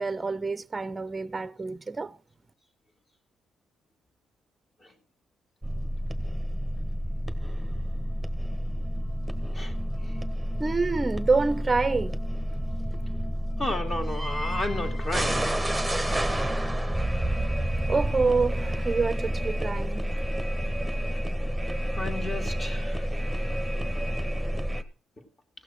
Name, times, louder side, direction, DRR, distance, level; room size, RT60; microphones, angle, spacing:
voice 1, 0.0-2.2 10.6-12.2 17.9-20.1, right 4 dB, 25° right, 0.6 m, -27 dB
sound 1, 5.6-24.8, equal, ahead, 1.3 m, -29 dB
voice 2, 9.5-10.2 13.6-15.6 22.0-23.5 25.2-25.3, left 1 dB, 30° left, 2.7 m, -34 dB
16.0 x 6.4 x 6.2 m
cardioid pair, 90°, 0 cm